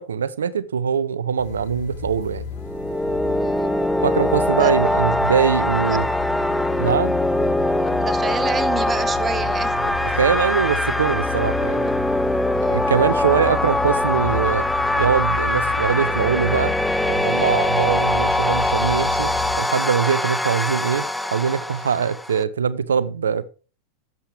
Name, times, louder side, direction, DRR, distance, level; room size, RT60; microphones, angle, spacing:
voice 1, 0.0-2.5 4.0-6.1 6.8-7.2 10.0-11.9 12.7-14.7 15.0-16.8 17.0-23.5, right 7 dB, 85° right, 0.5 m, -22 dB
sound 1, 1.4-19.6, left 5 dB, 65° left, 4.0 m, -32 dB
sound 2, 2.6-22.4, left 1 dB, 5° left, 0.5 m, -22 dB
voice 2, 3.2-3.8 4.6-4.7 5.9-6.0 8.0-9.8 12.6-12.9, right 6 dB, 20° right, 0.8 m, -29 dB
Clock, 4.8-5.1 5.8-6.1 6.8-7.1 7.8-8.2 8.8-9.1 9.8-10.1 10.8-11.2 11.8-12.2 12.8-13.2 13.9-14.1 14.8-15.1 15.9-16.1 16.8-17.2 17.9-18.1 18.9-19.1, left 8 dB, 30° left, 0.8 m, -42 dB
11.5 x 7.5 x 3.4 m
hypercardioid pair, 95°, 0 cm